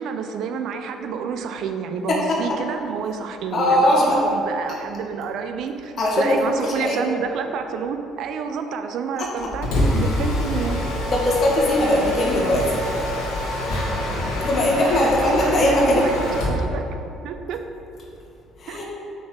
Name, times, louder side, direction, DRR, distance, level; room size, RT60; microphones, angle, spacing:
voice 1, 0.0-10.8 14.4-14.5 14.9-16.9 17.2-17.6 18.7-18.8, right 6 dB, 60° right, 7 dB, 0.5 m, -29 dB
voice 2, 2.1-2.6 3.5-4.2 6.0-7.0 9.2-9.3 11.1-12.8 14.4-16.0 18.6-18.8, left 1 dB, 50° left, -3 dB, 1.4 m, -20 dB
Mechanisms, 9.4-16.6, left 1 dB, 70° left, 1.6 m, -25 dB
5.8 x 4.1 x 6.2 m, 2.7 s
hypercardioid pair, 55°, 0 cm